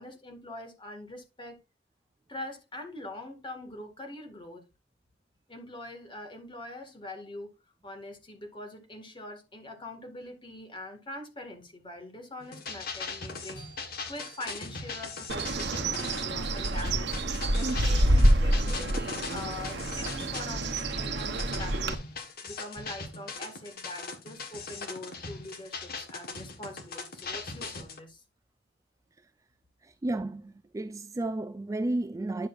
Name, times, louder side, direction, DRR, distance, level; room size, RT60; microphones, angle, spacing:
voice 1, 0.0-1.6 2.3-4.7 5.5-7.5 7.8-17.2 17.5-22.0 22.4-28.2, left 1 dB, 30° left, 2.0 m, -43 dB
sound 1, 12.4-28.0, left 4 dB, 55° left, 1.5 m, -40 dB
Bird, 15.3-21.9, right 1 dB, 65° right, 1.0 m, -27 dB
voice 2, 29.8-32.5, right 2 dB, 20° right, 0.3 m, -32 dB
10.5 x 6.7 x 2.5 m
head